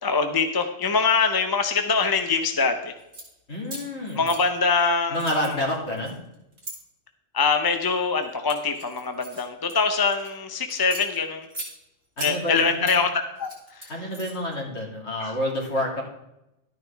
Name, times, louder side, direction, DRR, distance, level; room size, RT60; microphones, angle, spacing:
voice 1, 0.0-2.9 4.2-5.3 7.3-11.5 12.2-13.5 15.2-15.3, left 4 dB, 20° left, 6 dB, 0.7 m, -23 dB
sound 1, 3.0-3.3 3.6-4.9 5.1-6.8 7.4-7.8 8.2-10.3 10.7-11.7 12.2-13.0 13.4-14.5, right 1 dB, 80° right, 4.0 m, -39 dB
voice 2, 3.5-4.2 5.1-6.1 12.2-13.0 13.9-16.0, left 1 dB, 60° left, -2 dB, 3.1 m, -28 dB
12.5 x 9.5 x 3.5 m, 0.88 s
omnidirectional pair, 1.3 m